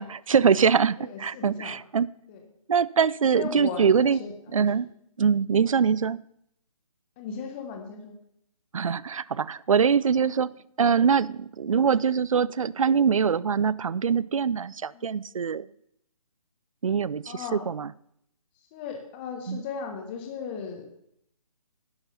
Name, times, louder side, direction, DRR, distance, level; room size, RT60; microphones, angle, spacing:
voice 1, 0.0-2.1 2.7-4.2 4.5-4.9 5.2-6.2 8.7-10.5 10.8-15.7 16.8-17.9 19.5-19.6, right 6 dB, 65° right, 21 dB, 0.4 m, -23 dB
voice 2, 1.0-1.8 2.3-2.4 3.3-4.8 7.2-8.1 10.1-10.2 14.9-15.1 17.3-17.7 18.7-20.9, left 6 dB, 15° left, 4 dB, 1.0 m, -37 dB
11.0 x 7.4 x 5.6 m, 0.74 s
figure-of-eight pair, 145°, 19 cm